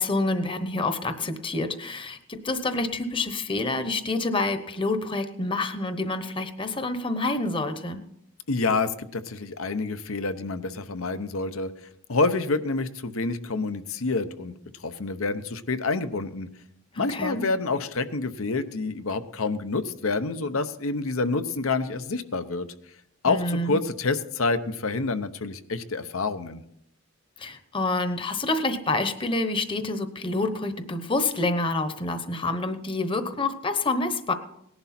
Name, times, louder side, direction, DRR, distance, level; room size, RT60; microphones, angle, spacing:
voice 1, 0.0-8.0 16.9-17.5 23.3-23.8 27.4-34.3, left 2 dB, 25° left, 9 dB, 0.9 m, -27 dB
voice 2, 8.5-11.7 12.1-14.5 14.8-16.5 17.0-22.7 23.2-26.6, left 3 dB, 80° left, 10 dB, 0.9 m, -28 dB
18.5 x 11.0 x 4.3 m, 0.75 s
head